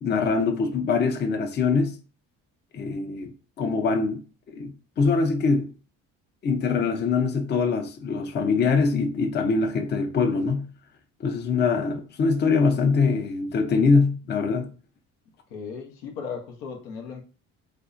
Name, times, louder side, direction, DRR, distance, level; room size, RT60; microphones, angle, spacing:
voice 1, 0.0-2.0 2.7-3.3 3.6-4.2 4.5-5.7 6.4-10.7 11.2-14.7, left 4 dB, 30° left, 0.5 m, -23 dB
voice 2, 15.5-17.2, left 6 dB, 85° left, 0.7 m, -36 dB
2.6 x 2.0 x 2.4 m
supercardioid pair, 75°, 37 cm